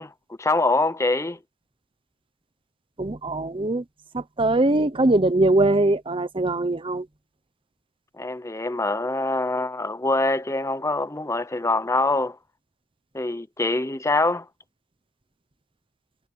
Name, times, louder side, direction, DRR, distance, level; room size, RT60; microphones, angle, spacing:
voice 1, 0.0-1.4 8.2-12.4 13.1-14.5, left 2 dB, 15° left, 0.7 m, -24 dB
voice 2, 3.0-3.8 4.1-7.1, right 2 dB, 25° right, 0.8 m, -21 dB
head